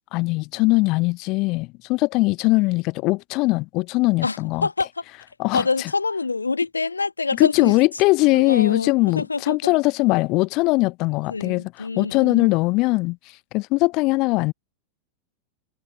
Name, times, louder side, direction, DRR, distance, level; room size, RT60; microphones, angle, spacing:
voice 1, 0.1-4.7 5.4-5.9 7.3-14.5, left 23 dB, 40° left, 0.4 m, -21 dB
voice 2, 4.2-5.0 5.5-7.7 8.3-9.7 11.3-12.5, left 4 dB, 80° left, 1.6 m, -26 dB
figure-of-eight pair, 90°, 0 cm